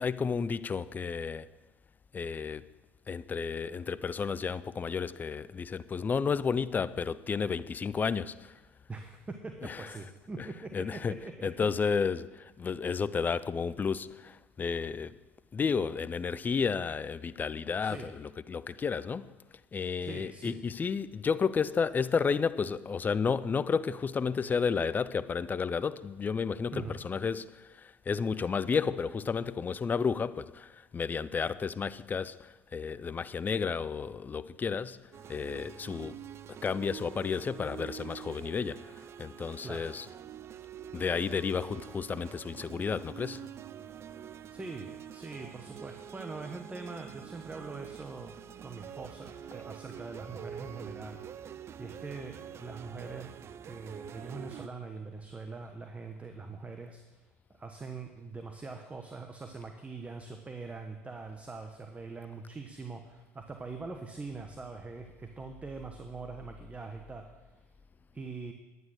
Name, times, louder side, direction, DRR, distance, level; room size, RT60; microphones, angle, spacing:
voice 1, 0.0-1.5 2.1-2.7 3.1-8.6 9.6-9.9 10.7-11.2 11.4-15.2 15.5-19.3 19.7-35.0 35.3-36.2 36.6-38.9 39.2-40.1 40.9-43.5, left 5 dB, 25° left, 0.5 m, -32 dB
voice 2, 8.9-11.7 17.8-18.1 20.0-20.6 26.7-27.0 39.6-39.9 44.5-51.2 51.8-53.3 53.6-57.2 57.5-67.3 68.1-68.5, right 4 dB, 20° right, 1.1 m, -43 dB
sound 1, 35.1-54.7, right 9 dB, 40° right, 0.5 m, -46 dB
11.0 x 9.3 x 6.5 m
hypercardioid pair, 75°, 7 cm